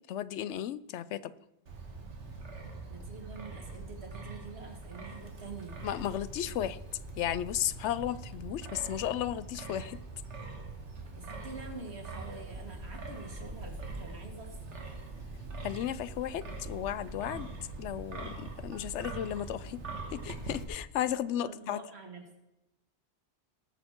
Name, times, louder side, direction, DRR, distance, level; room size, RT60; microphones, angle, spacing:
voice 1, 0.1-1.3 5.8-6.8 7.2-10.0 15.6-17.5 17.8-19.8 20.1-21.8, left 11 dB, 85° left, 16 dB, 0.9 m, -34 dB
Wind, 1.7-20.6, right 3 dB, 90° right, 1.9 m, -43 dB
voice 2, 2.9-5.8 11.1-14.8 21.4-22.3, right 3 dB, 65° right, 2 dB, 2.3 m, -46 dB
19.5 x 6.5 x 4.5 m, 0.94 s
omnidirectional pair, 1.2 m